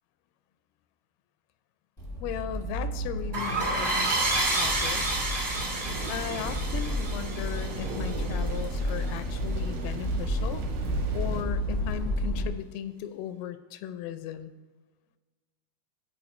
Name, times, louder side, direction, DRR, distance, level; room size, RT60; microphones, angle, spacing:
Accelerating revving vroom, 2.0-12.5, equal, 20° left, 0.6 m, -32 dB
voice 1, 2.2-4.1 4.4-5.1 6.1-10.7 11.1-14.5, left 10 dB, 85° left, 11 dB, 2.5 m, -37 dB
sound 1, 3.3-8.6, right 2 dB, 30° right, 1.1 m, -29 dB
sound 2, 4.6-11.4, right 4 dB, 70° right, 2.4 m, -41 dB
12.0 x 4.7 x 4.2 m, 1.3 s
omnidirectional pair, 4.4 m